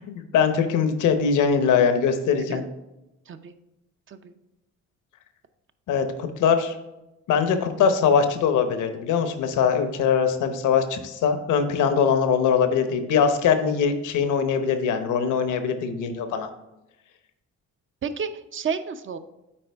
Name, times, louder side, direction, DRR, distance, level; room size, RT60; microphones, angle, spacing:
voice 1, 0.1-2.6 5.9-6.7 7.3-16.5, left 6 dB, 80° left, 8 dB, 0.9 m, -22 dB
voice 2, 18.0-19.2, right 6 dB, 40° right, 10 dB, 0.6 m, -31 dB
8.8 x 4.5 x 3.4 m, 0.95 s
cardioid pair, 90°, 30 cm